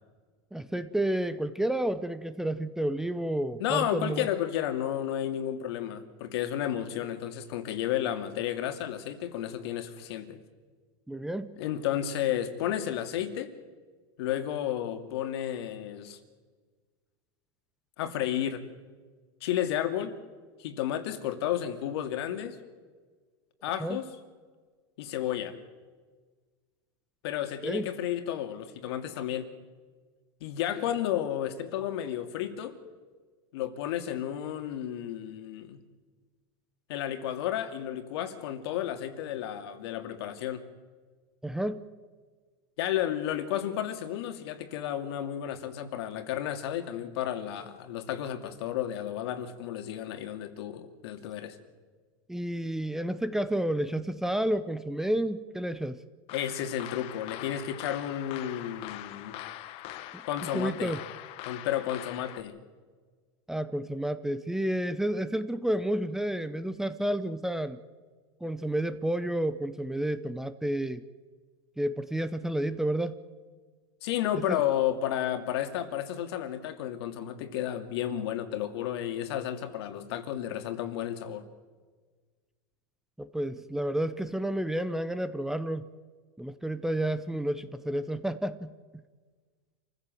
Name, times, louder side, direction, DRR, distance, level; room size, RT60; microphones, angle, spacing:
voice 1, 0.5-4.3 11.1-11.6 23.8-24.0 27.6-27.9 41.4-41.8 52.3-56.0 60.1-60.2 60.5-61.0 63.5-67.8 68.4-71.0 71.8-73.2 74.3-74.6 83.2-85.8 86.4-88.7, right 1 dB, 5° right, 12 dB, 0.7 m, -30 dB
voice 2, 3.6-10.4 11.6-13.5 14.2-16.2 18.0-18.6 19.4-20.2 20.6-22.6 23.6-24.1 25.0-25.5 27.2-29.5 30.4-32.8 33.5-35.8 36.9-40.6 42.8-51.6 56.3-59.4 60.2-60.9 61.5-62.6 74.0-81.5, left 11 dB, 70° left, 7 dB, 2.6 m, -32 dB
sound 1, 56.3-62.4, left 14 dB, 45° left, 1.1 m, -42 dB
27.0 x 15.5 x 7.8 m, 1.5 s
supercardioid pair, 145°, 14 cm